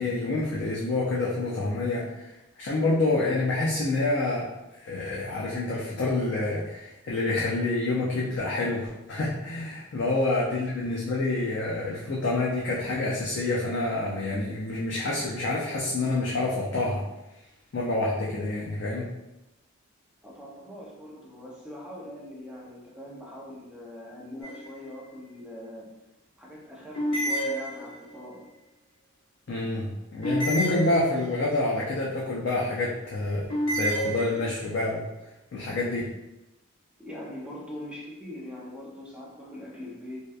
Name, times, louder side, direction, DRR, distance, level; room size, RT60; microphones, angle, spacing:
voice 1, 0.0-2.3 2.6-4.5 4.7-17.1 17.7-19.1 29.5-33.5 33.7-35.1 35.5-36.1, left 2 dB, 55° left, -4 dB, 0.4 m, -27 dB
voice 2, 20.2-25.9 26.4-28.5 37.0-40.3, left 1 dB, 5° right, -5 dB, 0.5 m, -42 dB
sound 1, 24.4-25.0 26.9-28.2 30.2-31.6 33.5-34.8, equal, 75° left, 0.9 m, -30 dB
2.7 x 2.2 x 2.3 m, 0.95 s
head